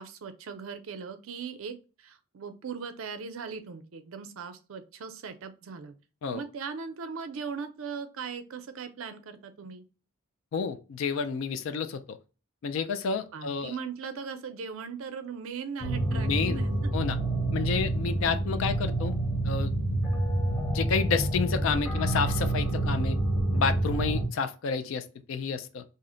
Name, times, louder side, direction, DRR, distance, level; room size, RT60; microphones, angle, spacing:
voice 1, 0.0-5.9 6.3-9.8 13.3-16.8, right 6 dB, 75° right, 0.4 m, -39 dB
voice 2, 10.5-12.2 12.6-13.7 16.1-16.6 16.9-17.2 17.5-19.1 19.4-19.7 20.7-23.2 23.5-25.8, left 5 dB, 70° left, 0.3 m, -30 dB
sound 1, 15.8-24.3, right 1 dB, 10° left, 0.6 m, -28 dB
2.7 x 2.1 x 3.7 m
head